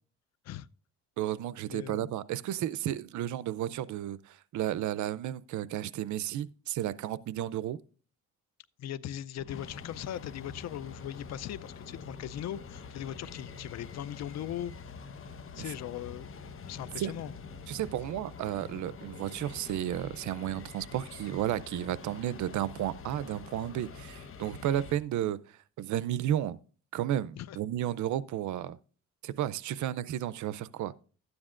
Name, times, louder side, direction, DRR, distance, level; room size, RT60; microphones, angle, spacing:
voice 1, 1.2-7.8 15.5-15.7 17.0-17.1 17.7-25.4 25.8-26.6 26.9-28.8 29.2-30.9, right 12 dB, 75° right, 0.6 m, -33 dB
voice 2, 1.7-2.1 8.8-14.7 15.5-16.3 16.7-17.3 18.6-18.8 27.3-27.6, left 11 dB, 60° left, 0.5 m, -39 dB
sound 1, 9.4-25.0, left 5 dB, 45° left, 1.0 m, -46 dB
12.5 x 9.6 x 2.5 m
cardioid pair, 90°, 30 cm